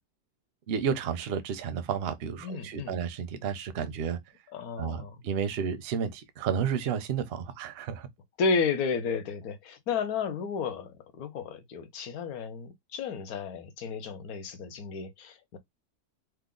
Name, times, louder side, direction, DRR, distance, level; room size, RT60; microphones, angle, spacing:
voice 1, 0.7-4.2 4.8-8.1, right 7 dB, 65° right, 0.6 m, -31 dB
voice 2, 2.4-3.0 4.5-5.2 8.4-15.6, left 5 dB, 75° left, 1.1 m, -32 dB
3.1 x 2.1 x 3.7 m
omnidirectional pair, 1.6 m